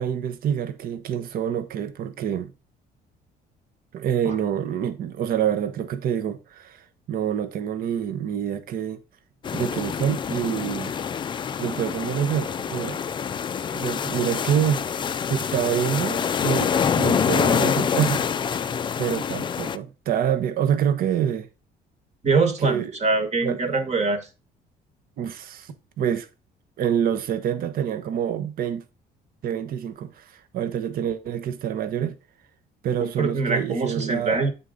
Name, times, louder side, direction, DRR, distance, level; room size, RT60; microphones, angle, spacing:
voice 1, 0.0-2.5 3.9-9.0 9.5-10.9 11.6-13.0 13.7-15.0 15.3-18.3 19.0-21.5 22.6-22.9 23.4-23.6 25.2-25.7 26.0-26.3 26.8-28.8 29.4-32.2 32.8-34.5, right 9 dB, 60° right, 0.8 m, -26 dB
sound 1, 9.4-19.8, left 7 dB, 30° left, 0.3 m, -26 dB
voice 2, 22.2-24.3 33.0-34.5, right 3 dB, 40° right, 1.3 m, -23 dB
8.0 x 3.8 x 3.8 m
cardioid pair, 110°, 17 cm